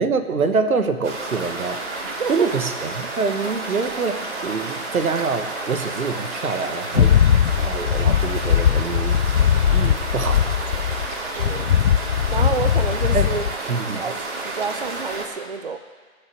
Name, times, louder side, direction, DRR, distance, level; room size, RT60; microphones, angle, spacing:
voice 1, 0.0-1.8 2.3-7.2 7.6-9.2 9.7-10.5 13.1-13.3 13.7-14.0, right 4 dB, 80° right, 8 dB, 1.3 m, -25 dB
sound 1, 1.0-15.3, right 2 dB, 60° right, 3.4 m, -31 dB
voice 2, 2.0-2.5 11.4-11.8 12.3-13.4 14.0-15.8, right 5 dB, 45° right, 8 dB, 0.5 m, -29 dB
sound 2, 6.9-11.1 11.4-13.5, left 9 dB, 60° left, 0.5 m, -19 dB
16.5 x 6.8 x 6.1 m, 1.5 s
hypercardioid pair, 160°, 41 cm